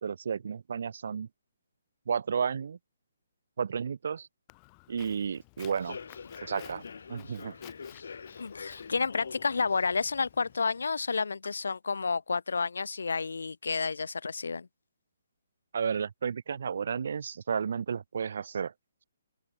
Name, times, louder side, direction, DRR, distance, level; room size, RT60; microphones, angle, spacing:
voice 1, 0.0-1.3 2.1-2.8 3.6-4.3 4.9-6.0 6.4-6.8 7.1-7.6 15.7-18.7, right 6 dB, 55° right, 0.5 m, -32 dB
Walk footsteps, 4.5-10.6, left 36 dB, 20° left, 5.7 m, -56 dB
Human voice / Subway metro underground, 5.6-11.2, left 5 dB, 70° left, 6.4 m, -46 dB
voice 2, 8.4-14.7, left 4 dB, 90° left, 0.5 m, -30 dB
open air
hypercardioid pair, 170°, 0 cm